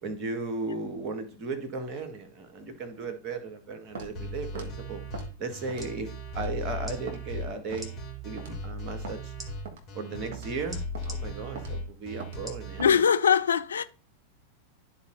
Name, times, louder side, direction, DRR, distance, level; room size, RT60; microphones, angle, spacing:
voice 1, 0.0-5.0 5.4-8.0 8.2-9.3 9.9-13.0, right 3 dB, 35° right, 1.5 m, -36 dB
Walk footsteps, 4.0-4.1 4.6-4.7 5.1-5.3 5.7-6.0 6.4-6.5 7.1-7.2 7.7-7.9 8.4-8.6 9.0-9.2 9.7-9.8 10.3-10.5 10.9-11.1 11.6-11.7 12.2-12.4 12.8-13.0, right 3 dB, 50° right, 1.4 m, -41 dB
sound 1, 4.1-12.9, equal, 35° left, 2.7 m, -37 dB
sound 2, 5.7-6.0 6.8-7.0 7.7-7.9 9.4-9.5 10.7-11.2 12.4-12.7 13.2-13.3, right 1 dB, 5° right, 1.6 m, -42 dB
voice 2, 12.8-13.8, left 7 dB, 70° left, 0.4 m, -22 dB
12.5 x 4.2 x 2.6 m
figure-of-eight pair, 90°, 0 cm